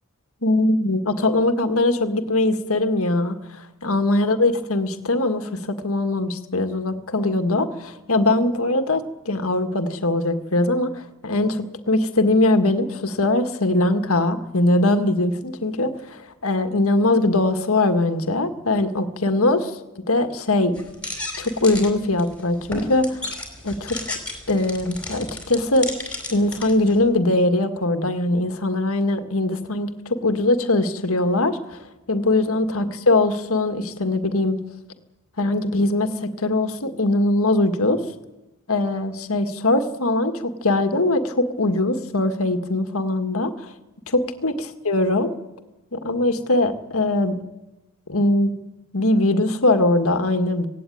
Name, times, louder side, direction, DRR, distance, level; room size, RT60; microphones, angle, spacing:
voice 1, 0.4-20.8 21.4-23.2 23.6-24.2 24.5-25.9 26.3-34.6 35.4-38.0 38.7-43.7 44.1-44.5 44.9-45.3 45.9-47.4 48.1-48.5 48.9-50.7, left 2 dB, 65° left, 8 dB, 1.8 m, -21 dB
sound 1, 20.8-27.0, left 2 dB, 5° left, 3.9 m, -34 dB
17.0 x 17.0 x 9.4 m, 1.0 s
head